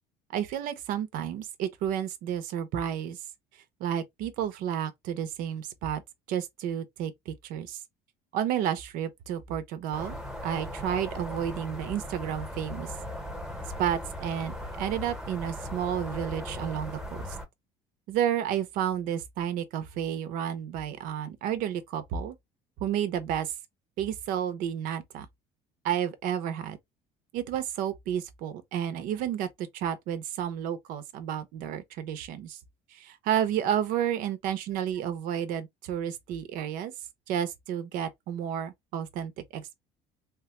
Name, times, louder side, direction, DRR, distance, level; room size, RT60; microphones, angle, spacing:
voice 1, 0.3-3.2 3.8-6.0 6.3-7.8 8.3-10.2 10.4-12.9 13.8-17.3 18.1-22.4 22.8-23.5 24.0-25.3 25.8-26.8 27.3-32.6 32.9-36.9 37.3-39.8, right 9 dB, 70° right, 0.7 m, -31 dB
sound 1, 9.9-17.5, left 1 dB, 5° right, 0.9 m, -38 dB
3.2 x 2.3 x 3.0 m
cardioid pair, 115°, 15 cm